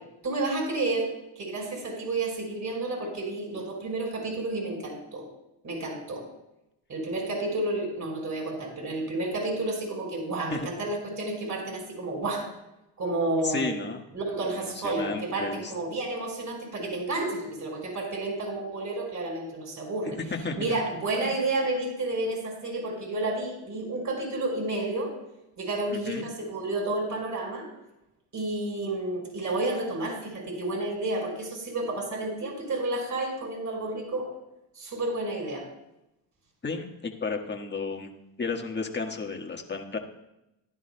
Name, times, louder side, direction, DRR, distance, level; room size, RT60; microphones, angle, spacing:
voice 1, 0.2-1.1 1.4-5.2 5.6-6.2 6.9-12.4 13.0-13.7 14.1-20.2 20.6-25.1 25.6-27.7 28.3-34.3 34.8-35.6, right 2 dB, 40° right, 0 dB, 4.7 m, -31 dB
voice 2, 13.4-14.0 14.6-15.7 20.1-20.7 26.1-26.3 36.6-38.1 38.4-40.0, left 4 dB, 20° left, 3 dB, 1.5 m, -33 dB
17.0 x 11.0 x 2.2 m, 0.88 s
cardioid pair, 95°, 48 cm